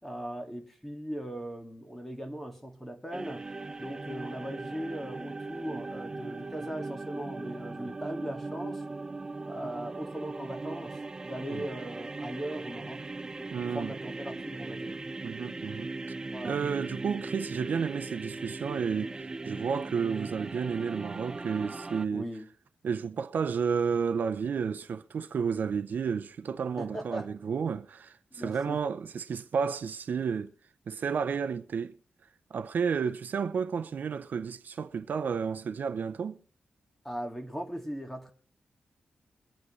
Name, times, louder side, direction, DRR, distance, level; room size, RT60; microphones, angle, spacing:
voice 1, 0.0-3.5 3.8-8.8 9.4-13.1 13.4-15.0 16.3-16.6 22.1-22.5 26.8-27.3 28.3-28.8 37.0-38.3, equal, 5° left, 1.9 m, -39 dB
sound 1, 3.1-22.1, right 3 dB, 20° right, 0.5 m, -39 dB
voice 2, 13.5-13.9 15.2-15.9 16.4-22.3 22.8-30.5 30.9-32.0 32.5-36.4, right 6 dB, 65° right, 0.6 m, -31 dB
23.0 x 8.7 x 3.1 m
wide cardioid pair, 135°, 3 cm